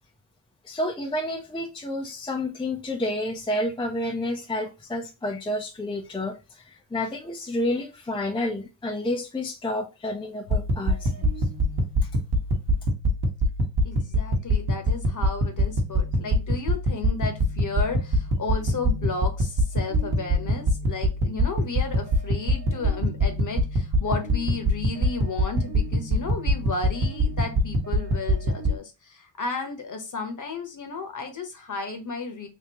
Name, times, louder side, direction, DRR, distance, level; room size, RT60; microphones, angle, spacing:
voice 1, 0.6-11.1, left 1 dB, 10° left, 2 dB, 0.5 m, -30 dB
sound 1, 10.5-28.8, equal, 50° right, 1.1 m, -25 dB
voice 2, 13.8-32.5, left 4 dB, 40° left, 5 dB, 1.0 m, -33 dB
3.6 x 2.7 x 2.9 m, 0.28 s
cardioid pair, 105°, 48 cm